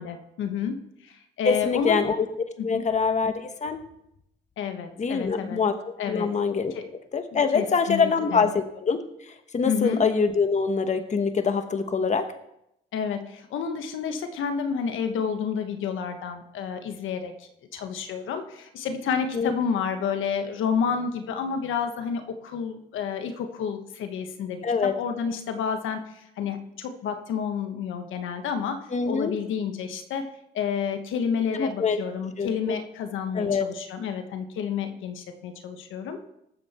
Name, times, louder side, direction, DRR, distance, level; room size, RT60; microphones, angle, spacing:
voice 1, 0.0-2.0 2.6-2.8 4.6-5.6 6.0-6.3 6.7-6.9 7.3-8.5 9.6-10.0 12.9-30.2 30.5-36.2, left 7 dB, 80° left, 7 dB, 1.3 m, -30 dB
voice 2, 1.4-2.3 2.6-3.8 5.0-5.8 6.1-6.7 7.1-12.3 19.3-19.5 24.6-24.9 28.9-29.3 31.5-32.0 32.4-32.8 33.3-33.7, left 5 dB, 35° left, 8 dB, 1.2 m, -24 dB
19.0 x 7.7 x 4.3 m, 0.81 s
cardioid pair, 90°, 20 cm